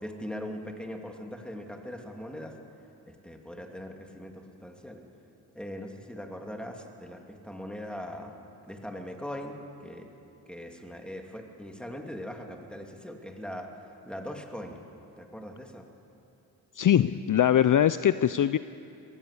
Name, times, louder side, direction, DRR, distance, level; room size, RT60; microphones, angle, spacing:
voice 1, 0.0-2.5 3.1-5.0 5.5-8.4 8.7-10.1 10.5-14.8 15.2-15.9, equal, ahead, 3 dB, 2.6 m, -40 dB
voice 2, 16.8-18.6, left 10 dB, 55° left, 14 dB, 0.5 m, -22 dB
21.0 x 15.0 x 8.4 m, 2.8 s
cardioid pair, 50°, 38 cm